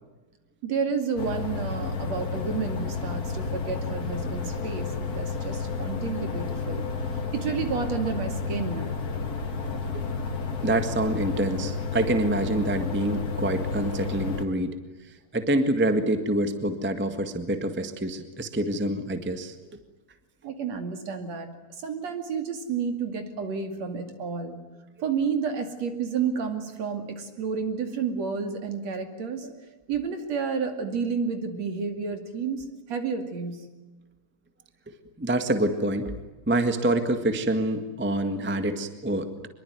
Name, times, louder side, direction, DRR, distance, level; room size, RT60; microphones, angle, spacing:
voice 1, 0.6-6.9 7.3-9.0 20.4-24.6 25.0-29.5 29.9-33.7, right 5 dB, 55° right, 6 dB, 3.6 m, -30 dB
sound 1, 1.2-14.4, left 4 dB, 35° left, 1.8 m, -31 dB
voice 2, 10.6-14.7 15.3-19.5 29.4-29.5 35.2-36.1 36.5-39.5, right 1 dB, 10° right, 8 dB, 0.7 m, -26 dB
24.5 x 22.5 x 9.4 m, 1.2 s
omnidirectional pair, 3.6 m